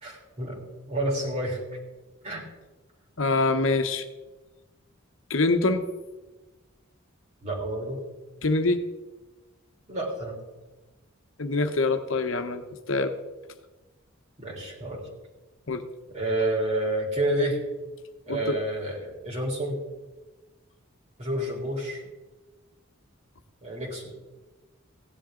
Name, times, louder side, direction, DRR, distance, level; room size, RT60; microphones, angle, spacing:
voice 1, 0.0-0.6 0.9-1.6 2.2-2.4 7.4-8.1 9.9-10.4 14.4-15.1 16.1-17.6 18.3-19.8 21.2-22.0 23.6-24.1, right 1 dB, 35° right, -2 dB, 3.4 m, -29 dB
voice 2, 3.2-4.0 5.3-5.8 8.4-8.8 11.4-12.6 12.9-13.1 15.7-15.9 18.3-18.6, left 3 dB, 70° left, 7 dB, 1.0 m, -24 dB
16.5 x 11.0 x 3.8 m, 1.2 s
head